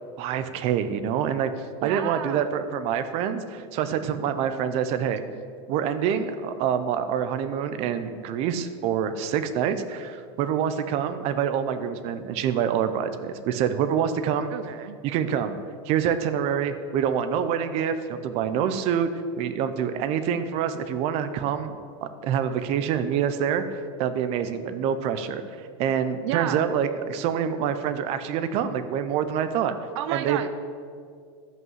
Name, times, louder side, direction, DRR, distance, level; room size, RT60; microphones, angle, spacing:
voice 1, 0.2-1.5 1.8-5.2 5.7-14.5 15.0-15.6 15.8-19.1 19.4-21.7 22.0-29.7 30.1-30.4, right 8 dB, 45° right, 10 dB, 0.7 m, -26 dB
voice 2, 1.8-2.5 14.5-15.0 26.2-26.8 29.9-30.5, right 11 dB, 75° right, 12 dB, 0.5 m, -31 dB
12.5 x 5.6 x 7.5 m, 2.2 s
supercardioid pair, 155°, 15 cm